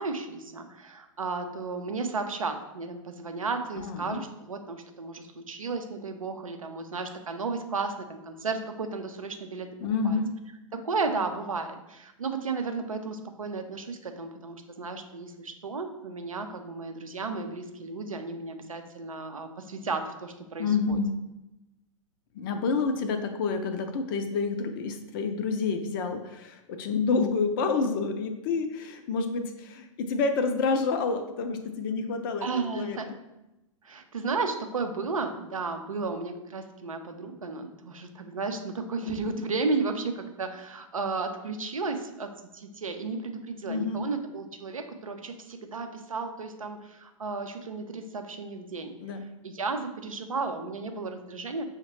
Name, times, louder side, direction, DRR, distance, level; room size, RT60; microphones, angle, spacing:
voice 1, 0.0-9.8 10.0-10.2 10.7-21.0 32.4-33.1 33.8-48.9 49.4-51.6, right 4 dB, 80° right, 6 dB, 0.5 m, -33 dB
voice 2, 3.8-4.2 9.8-10.3 20.6-21.2 22.3-33.2 39.0-39.4 43.7-44.0 49.0-49.2, left 4 dB, 40° left, 7 dB, 0.4 m, -28 dB
6.1 x 2.1 x 3.0 m, 0.94 s
figure-of-eight pair, 105°, 17 cm